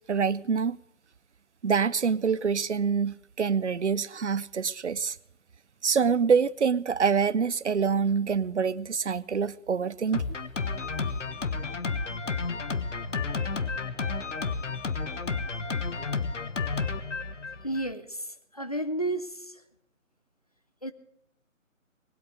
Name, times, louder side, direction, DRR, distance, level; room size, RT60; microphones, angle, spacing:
voice 1, 0.1-0.8 1.6-5.2 5.8-10.2, right 6 dB, 55° right, 0.6 m, -26 dB
Drum kit, 10.1-17.9, left 4 dB, 60° left, 1.2 m, -31 dB
voice 2, 17.6-18.3 18.5-19.5 20.8-20.9, right 1 dB, 30° left, 0.7 m, -31 dB
19.5 x 8.6 x 7.8 m
figure-of-eight pair, 165°, 41 cm